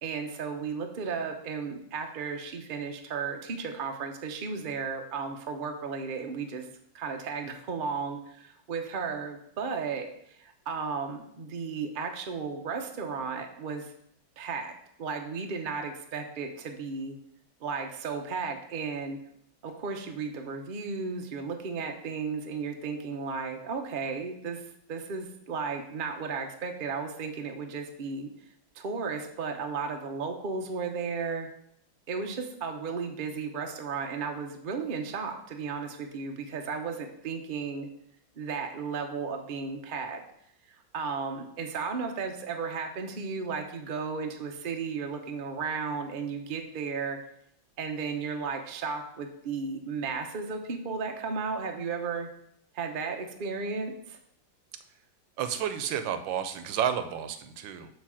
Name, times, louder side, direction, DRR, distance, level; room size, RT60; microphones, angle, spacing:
voice 1, 0.0-6.7 6.9-13.9 14.4-14.7 15.0-17.2 17.6-19.2 19.6-28.3 28.7-31.5 32.1-37.9 38.4-40.2 40.9-47.2 47.8-52.3 52.7-54.2, right 5 dB, 55° right, 4 dB, 0.5 m, -34 dB
voice 2, 55.4-57.9, right 9 dB, 85° right, 9 dB, 1.4 m, -31 dB
7.9 x 3.2 x 6.2 m, 0.71 s
omnidirectional pair, 2.0 m